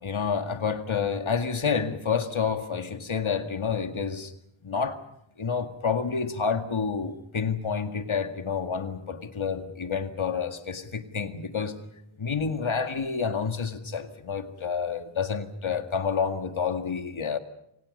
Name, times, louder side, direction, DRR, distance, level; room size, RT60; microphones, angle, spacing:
voice 1, 0.0-4.3 4.6-5.0 5.4-11.8 12.2-17.4, left 6 dB, 70° left, 7 dB, 2.1 m, -29 dB
28.0 x 26.5 x 5.4 m, 0.76 s
wide cardioid pair, 65°, 49 cm